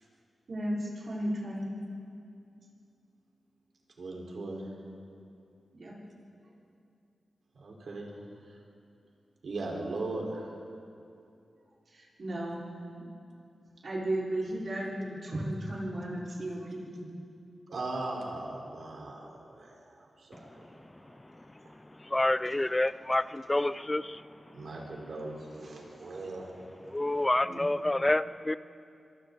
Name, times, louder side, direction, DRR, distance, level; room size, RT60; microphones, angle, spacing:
voice 1, 0.5-1.7 5.7-5.9 11.9-12.7 13.8-17.1 27.4-27.9, right 1 dB, 55° right, -6 dB, 4.7 m, -35 dB
voice 2, 4.0-4.7 7.6-8.2 9.4-10.5 17.7-20.7 24.5-26.5 27.1-27.2, right 2 dB, 70° right, -1 dB, 4.4 m, -38 dB
voice 3, 22.1-23.2 23.5-24.0 26.9-28.6, left 1 dB, 15° left, 15 dB, 0.4 m, -27 dB
26.0 x 24.5 x 4.0 m, 2.5 s
wide cardioid pair, 95°, 0 cm